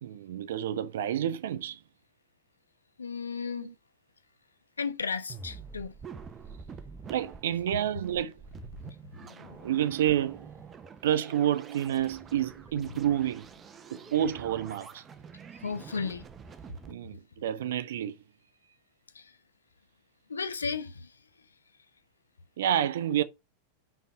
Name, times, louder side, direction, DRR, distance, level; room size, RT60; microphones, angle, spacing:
voice 1, 0.0-1.8 3.4-3.7 7.1-8.4 9.6-10.5 11.0-13.5 13.9-15.0 16.9-18.2 22.6-23.2, right 11 dB, 60° right, 0.8 m, -29 dB
voice 2, 3.0-3.7 4.8-5.9 7.7-7.8 9.2-9.7 15.6-16.3 19.1-19.3 20.3-21.1, left 5 dB, 75° left, 1.0 m, -34 dB
sound 1, 5.3-16.9, right 5 dB, 20° right, 1.0 m, -47 dB
5.9 x 5.5 x 6.5 m
figure-of-eight pair, 90°, 0 cm